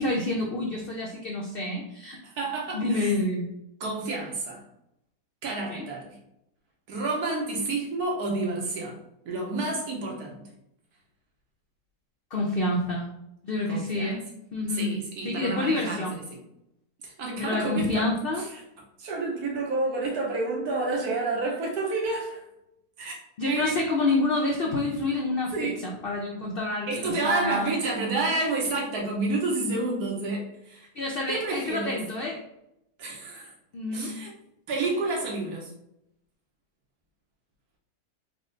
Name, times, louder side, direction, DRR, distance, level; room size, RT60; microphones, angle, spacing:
voice 1, 0.0-2.2 2.7-3.5 5.7-5.8 12.3-13.1 13.4-14.2 14.5-15.0 15.2-16.2 17.4-18.5 23.4-27.7 31.0-32.4 33.7-34.1, left 2 dB, 75° left, -1 dB, 0.5 m, -28 dB
voice 2, 2.2-3.1 3.8-4.6 5.4-6.1 6.9-9.0 9.2-10.4 13.7-14.1 14.7-16.1 17.0-18.1 18.4-18.5 19.0-22.4 23.0-23.2 23.4-23.6 25.5-25.8 26.9-30.9 31.3-32.0 33.0-33.5 33.9-34.3 34.7-35.7, right 3 dB, 80° right, -1 dB, 1.4 m, -29 dB
3.6 x 2.1 x 3.7 m, 0.82 s
omnidirectional pair, 1.6 m